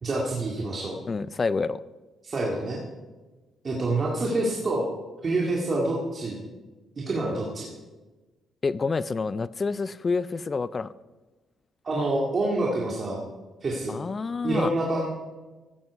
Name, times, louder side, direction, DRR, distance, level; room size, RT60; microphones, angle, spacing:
voice 1, 0.0-1.0 2.2-2.8 3.6-4.9 5.2-6.4 7.0-7.7 11.8-13.2 13.6-14.0 14.4-15.1, right 2 dB, 40° right, -4 dB, 2.0 m, -27 dB
voice 2, 1.1-1.8 8.6-10.9 13.9-14.7, left 4 dB, 35° left, 18 dB, 0.4 m, -28 dB
15.5 x 7.6 x 4.7 m, 1.2 s
cardioid pair, 90°, 0 cm